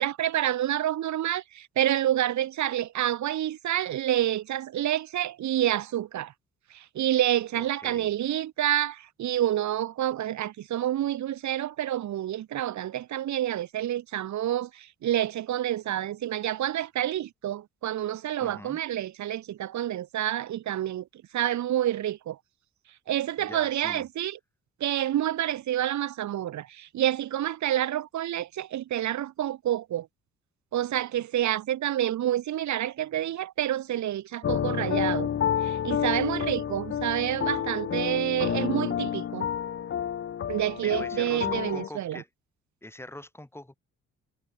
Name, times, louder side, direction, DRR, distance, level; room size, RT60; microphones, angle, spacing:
voice 1, 0.0-6.3 6.7-21.0 21.3-22.4 23.1-24.4 24.8-30.1 30.7-35.3 35.6-39.5 40.5-42.2, right 12 dB, 70° right, 1.6 m, -28 dB
voice 2, 7.5-8.1 18.4-18.8 23.4-24.0 40.8-42.3 42.8-43.7, left 1 dB, 10° left, 7.0 m, -43 dB
sound 1, 34.4-41.9, left 9 dB, 45° left, 0.8 m, -29 dB
cardioid pair, 90°, 30 cm